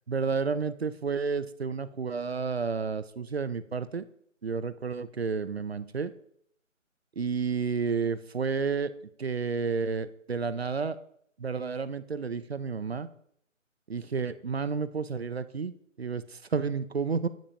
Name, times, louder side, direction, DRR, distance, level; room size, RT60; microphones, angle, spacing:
voice 1, 0.1-4.1 4.4-6.1 7.2-8.9 9.2-11.0 11.4-13.1 13.9-17.3, right 5 dB, 50° right, 15 dB, 0.5 m, -31 dB
12.0 x 10.5 x 2.9 m, 0.68 s
hypercardioid pair, 175°, 39 cm